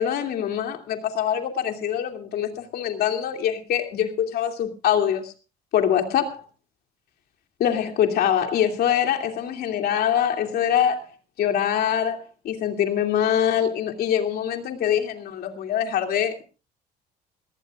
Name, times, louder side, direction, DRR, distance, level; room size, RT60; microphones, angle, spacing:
voice 1, 0.0-5.3 5.7-6.4 7.6-11.1 11.4-16.4, left 9 dB, 65° left, 2.8 m, -24 dB
20.5 x 18.0 x 2.5 m
cardioid pair, 110°, 17 cm